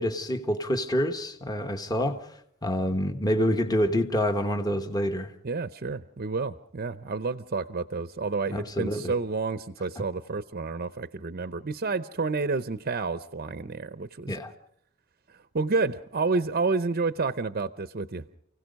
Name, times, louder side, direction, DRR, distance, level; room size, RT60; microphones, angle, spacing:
voice 1, 0.0-2.3 2.6-5.3 8.5-9.1 14.3-14.5, equal, 20° left, 1.3 m, -27 dB
voice 2, 5.4-14.4 15.5-18.2, right 4 dB, 45° right, 0.7 m, -30 dB
29.5 x 17.0 x 5.3 m
head